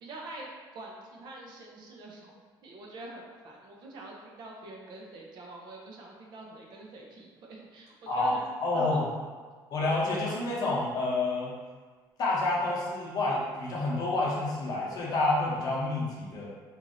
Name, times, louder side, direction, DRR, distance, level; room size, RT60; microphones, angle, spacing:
voice 1, 0.0-0.5 0.7-8.4 8.7-9.1, right 2 dB, 60° right, -1 dB, 0.6 m, -45 dB
voice 2, 8.6-9.0 9.7-11.5 12.2-16.5, left 2 dB, 50° left, -4 dB, 0.8 m, -28 dB
3.0 x 2.5 x 2.6 m, 1.5 s
cardioid pair, 125°, 8 cm